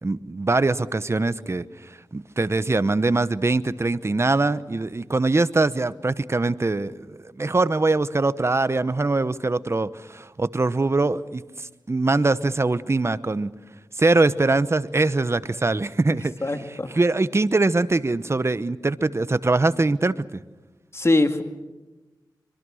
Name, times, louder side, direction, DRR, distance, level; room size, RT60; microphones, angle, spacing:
voice 1, 0.0-13.5 14.0-20.4, right 3 dB, 35° right, 14 dB, 1.0 m, -23 dB
voice 2, 16.4-16.9 20.9-21.4, left 2 dB, 35° left, 7 dB, 2.2 m, -22 dB
25.0 x 23.5 x 6.4 m, 1.2 s
cardioid pair, 55°, 8 cm